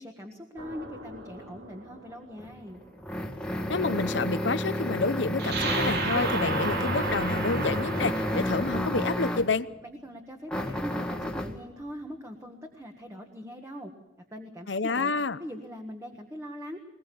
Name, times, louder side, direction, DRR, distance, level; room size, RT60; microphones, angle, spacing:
voice 1, 0.0-2.8 9.8-13.9 14.3-15.1 15.4-16.8, equal, 15° right, 3 dB, 1.5 m, -41 dB
sound 1, 0.6-2.5 5.4-8.8, right 3 dB, 60° right, 2.2 m, -33 dB
sound 2, 2.4-9.6 10.5-11.6, equal, 5° left, 1.5 m, -31 dB
voice 2, 3.7-9.7 14.7-15.4, left 3 dB, 75° left, 13 dB, 0.8 m, -29 dB
21.5 x 20.5 x 7.0 m, 1.0 s
head